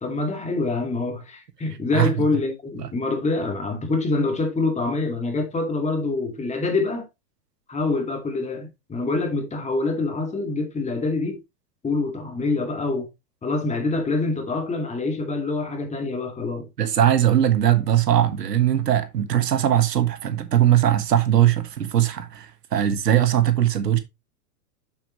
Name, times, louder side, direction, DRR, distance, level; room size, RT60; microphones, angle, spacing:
voice 1, 0.0-7.1 7.7-11.4 11.8-13.1 13.4-16.7, left 3 dB, 15° left, 2.1 m, -25 dB
voice 2, 16.8-24.0, right 11 dB, 90° right, 1.4 m, -20 dB
7.4 x 7.1 x 3.0 m
hypercardioid pair, 115°, 47 cm